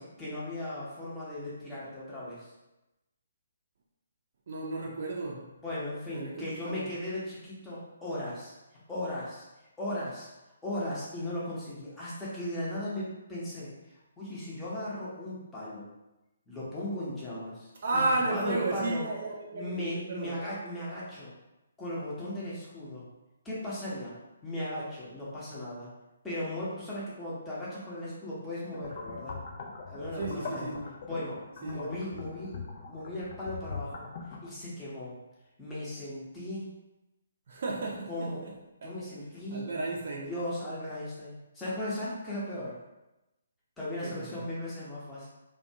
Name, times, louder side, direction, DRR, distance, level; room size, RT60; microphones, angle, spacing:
voice 1, 0.0-2.5 5.6-8.5 8.9-9.4 9.8-10.3 10.6-13.7 14.2-15.9 16.5-18.0 18.3-19.1 19.5-21.3 21.8-23.0 23.4-24.1 24.4-25.9 26.2-29.4 29.9-30.7 31.0-32.6 32.9-34.1 34.4-35.1 35.6-36.7 38.1-38.4 38.8-39.6 40.3-42.7 43.8-45.3, left 1 dB, 10° left, -9 dB, 0.8 m, -37 dB
voice 2, 4.5-5.5 6.1-6.9 17.8-20.4 30.2-30.9 31.6-31.9 37.5-38.5 38.8-38.9 39.5-40.3 44.0-44.4, right 2 dB, 50° right, -2 dB, 0.5 m, -33 dB
sound 1, 28.7-34.5, left 4 dB, 45° left, 0.4 m, -42 dB
2.5 x 2.2 x 2.7 m, 0.97 s
figure-of-eight pair, 135°, 0 cm